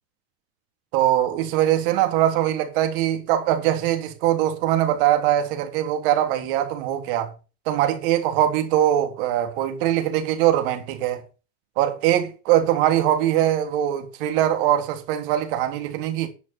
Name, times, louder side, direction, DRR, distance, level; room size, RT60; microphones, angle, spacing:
voice 1, 0.9-7.3 7.7-11.2 11.8-16.3, right 12 dB, 55° right, 3.6 m, -22 dB
11.0 x 6.1 x 8.9 m
supercardioid pair, 150°, 32 cm